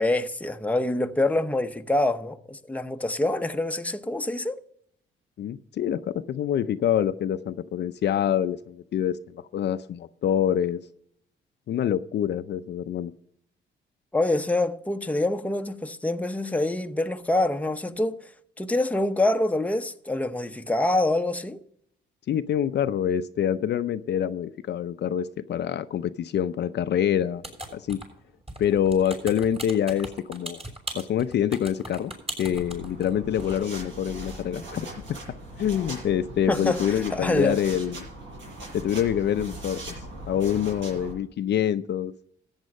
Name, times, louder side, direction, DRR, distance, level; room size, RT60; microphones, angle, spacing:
voice 1, 0.0-4.6 14.1-18.3 18.6-21.6 36.5-37.6, left 2 dB, 5° left, 0.8 m, -26 dB
voice 2, 5.4-10.8 11.7-13.1 22.3-27.4 27.7-28.0 28.6-30.6 30.9-32.1 32.4-35.2 35.6-38.1 38.7-39.8 40.3-42.1, left 9 dB, 60° left, 0.6 m, -26 dB
sound 1, 27.4-28.2 28.5-33.1 33.4-33.6, right 2 dB, 30° right, 6.0 m, -38 dB
sound 2, 32.5-41.1, right 1 dB, 75° right, 6.3 m, -40 dB
14.0 x 8.9 x 5.3 m
cardioid pair, 90°, 20 cm